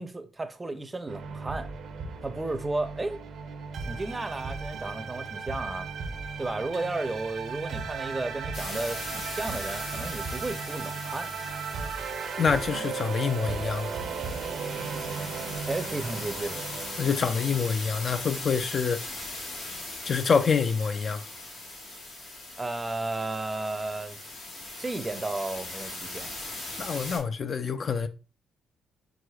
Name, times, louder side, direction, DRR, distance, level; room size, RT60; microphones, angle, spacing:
voice 1, 0.0-1.7 2.2-3.2 3.9-5.9 6.4-11.3 15.7-16.6 22.6-24.2 24.8-26.3, right 2 dB, 20° right, 0.5 m, -33 dB
sound 1, 1.1-17.5, right 5 dB, 70° right, 0.6 m, -36 dB
sound 2, 8.5-27.2, left 2 dB, 85° left, 2.1 m, -40 dB
voice 2, 12.4-14.0 17.0-19.0 20.0-21.2 26.8-28.1, left 6 dB, 45° left, 0.4 m, -26 dB
4.8 x 3.8 x 2.3 m
cardioid pair, 90°, 0 cm